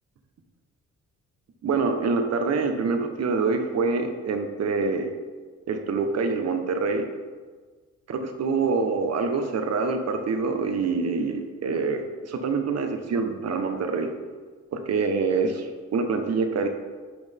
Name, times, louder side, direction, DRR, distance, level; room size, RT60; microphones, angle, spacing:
voice 1, 1.6-5.1 5.7-7.0 8.1-14.1 14.7-16.7, right 4 dB, 55° right, 6 dB, 1.3 m, -25 dB
11.5 x 6.1 x 3.6 m, 1.4 s
cardioid pair, 90°, 30 cm